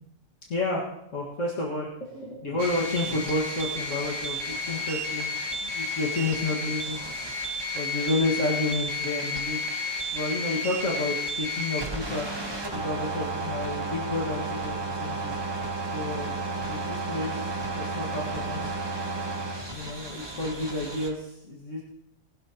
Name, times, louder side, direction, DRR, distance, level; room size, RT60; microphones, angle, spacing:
voice 1, 0.5-5.3 5.6-7.0 7.7-12.3 12.6-15.3 15.9-16.3 16.6-18.8 19.7-21.8, left 2 dB, 60° left, -4 dB, 2.2 m, -31 dB
sound 1, 2.6-21.1, equal, 20° right, 1.3 m, -32 dB
20.5 x 12.0 x 2.9 m, 0.81 s
omnidirectional pair, 1.5 m